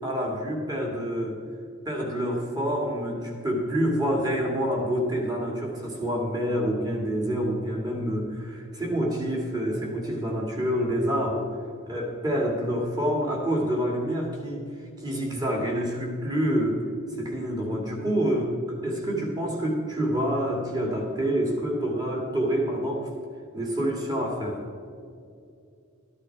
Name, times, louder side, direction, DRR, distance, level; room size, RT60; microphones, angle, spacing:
voice 1, 0.0-1.4 1.9-11.5 11.9-14.7 15.0-16.8 17.2-23.1 23.5-24.6, equal, 20° right, -1 dB, 2.3 m, -27 dB
13.5 x 11.0 x 4.7 m, 2.4 s
head